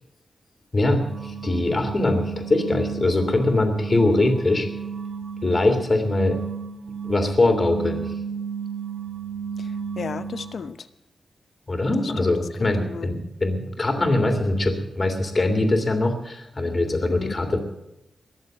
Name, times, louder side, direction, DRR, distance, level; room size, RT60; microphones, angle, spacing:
voice 1, 0.7-4.7 5.4-6.4 7.0-8.1 11.7-17.6, left 2 dB, 35° left, 6 dB, 2.9 m, -22 dB
sound 1, 1.0-10.7, right 6 dB, 80° right, 1.2 m, -33 dB
voice 2, 9.6-10.9 12.0-13.1 17.1-17.4, left 5 dB, 65° left, 12 dB, 0.9 m, -35 dB
21.5 x 7.2 x 7.8 m, 0.90 s
cardioid pair, 80°, 0 cm